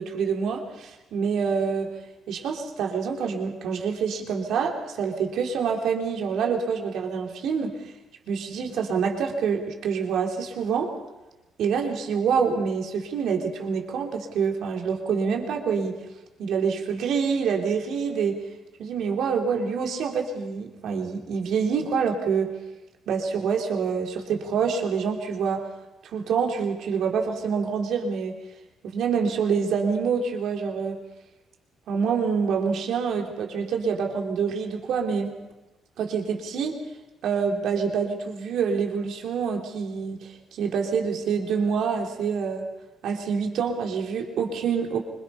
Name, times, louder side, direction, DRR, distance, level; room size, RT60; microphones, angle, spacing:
voice 1, 0.0-1.9 2.3-7.9 8.3-10.9 11.6-16.0 16.4-18.4 18.8-22.5 23.1-25.6 26.0-28.4 28.8-31.0 31.9-35.3 36.0-36.8 37.2-42.7 43.0-45.0, right 6 dB, 75° right, 1 dB, 3.1 m, -26 dB
25.0 x 22.0 x 5.7 m, 1.1 s
cardioid pair, 90°, 0 cm